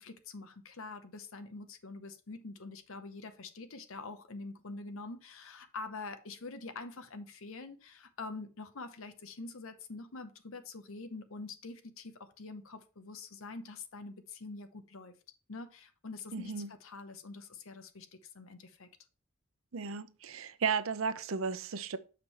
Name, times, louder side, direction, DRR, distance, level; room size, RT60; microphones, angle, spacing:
voice 1, 0.0-12.1 12.4-15.1 15.5-18.1 18.3-18.9, left 3 dB, 70° left, 0.8 m, -45 dB
voice 2, 16.3-16.7 19.7-22.0, right 5 dB, 70° right, 0.6 m, -34 dB
7.1 x 5.2 x 4.1 m
head